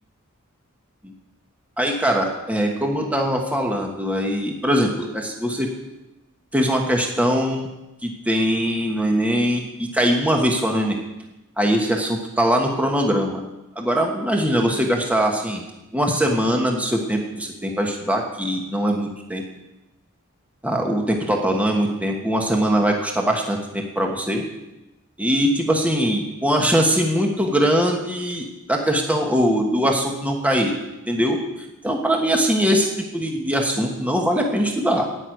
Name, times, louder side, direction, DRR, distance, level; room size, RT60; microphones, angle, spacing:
voice 1, 1.8-5.7 6.5-7.7 8.0-11.0 11.6-13.4 13.7-15.6 15.9-19.4 20.6-24.4 25.2-30.7 31.1-32.9 33.1-35.1, equal, 5° right, 1 dB, 1.4 m, -21 dB
11.0 x 8.2 x 9.3 m, 0.98 s
head